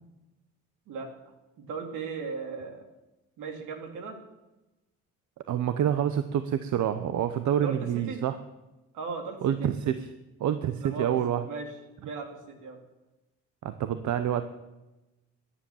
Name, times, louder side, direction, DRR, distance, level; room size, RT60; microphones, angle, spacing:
voice 1, 0.9-1.3 1.7-2.8 3.4-4.2 7.6-8.2 8.9-9.7 10.8-11.2 11.4-12.8, right 5 dB, 85° right, 4 dB, 2.7 m, -37 dB
voice 2, 5.5-8.4 9.4-10.1 10.4-11.4 13.6-14.4, right 10 dB, 70° right, 10 dB, 0.9 m, -27 dB
14.0 x 10.5 x 7.2 m, 1.0 s
cardioid pair, 90°, 30 cm